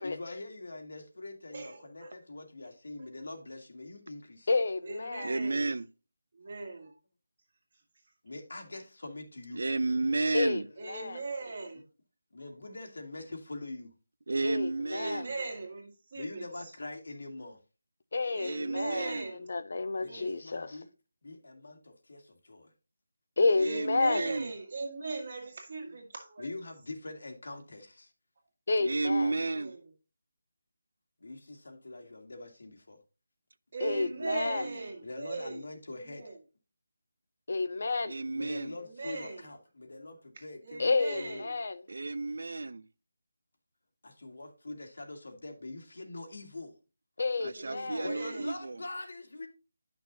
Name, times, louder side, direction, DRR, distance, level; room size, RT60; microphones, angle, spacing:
voice 1, 0.0-4.6 8.2-9.6 12.3-13.9 16.1-17.6 20.0-20.9 21.2-22.7 26.4-28.1 31.2-33.0 35.0-36.2 38.3-41.5 44.0-46.8 47.4-47.5 48.0-49.5, left 2 dB, 70° left, 2.0 m, -44 dB
voice 2, 1.5-2.1 3.0-3.1 4.8-5.8 6.3-7.0 10.8-11.8 14.9-16.5 18.4-19.5 20.0-20.4 23.6-26.5 29.4-29.8 33.7-35.6 35.9-36.4 38.8-39.4 40.4-41.6 47.6-48.5, right 3 dB, 45° right, 1.8 m, -40 dB
voice 3, 4.5-5.3 10.3-10.6 10.9-11.0 14.4-15.2 18.1-19.1 19.5-20.7 23.4-24.3 28.7-29.3 33.8-34.6 37.5-38.1 40.8-41.8 47.2-48.0, left 3 dB, 50° left, 0.5 m, -30 dB
voice 4, 5.2-5.9 9.5-10.7 14.3-15.3 18.4-19.3 23.6-24.5 28.8-29.8 33.8-34.8 38.1-38.8 41.9-42.9 47.4-48.8, right 3 dB, 65° right, 0.5 m, -32 dB
9.4 x 5.9 x 2.7 m
figure-of-eight pair, 175°, 0 cm